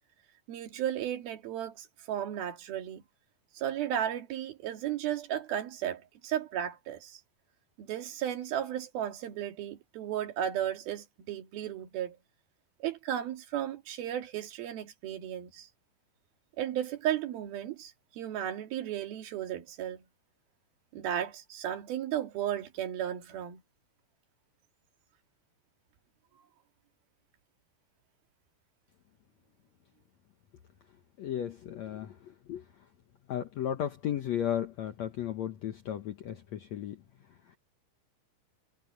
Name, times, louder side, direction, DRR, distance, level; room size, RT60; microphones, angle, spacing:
voice 1, 0.5-3.0 3.6-7.2 7.8-12.2 12.8-15.7 16.6-20.0 20.9-23.6 26.3-26.5, right 10 dB, 70° right, 3.9 m, -34 dB
voice 2, 31.2-32.6 33.3-37.0, left 10 dB, 80° left, 1.6 m, -35 dB
omnidirectional pair, 4.6 m